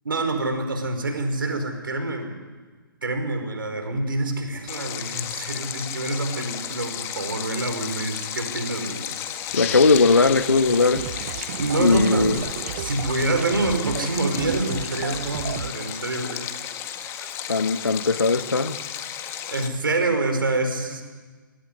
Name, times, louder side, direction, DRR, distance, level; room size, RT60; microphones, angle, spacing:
voice 1, 0.0-2.4 3.0-9.1 11.6-12.3 12.8-16.5 17.0-17.3 19.5-21.0, right 2 dB, 75° right, 6 dB, 5.2 m, -26 dB
Stream, 4.7-19.7, left 10 dB, 25° left, 1.8 m, -34 dB
voice 2, 9.5-11.1 11.8-12.4 17.5-18.8, left 3 dB, 80° left, 11 dB, 1.4 m, -19 dB
sound 1, 9.5-12.7, left 13 dB, 40° left, 0.9 m, -36 dB
sound 2, 10.7-15.7, right 12 dB, 40° right, 0.7 m, -33 dB
23.0 x 18.0 x 9.8 m, 1.4 s
figure-of-eight pair, 125°, 12 cm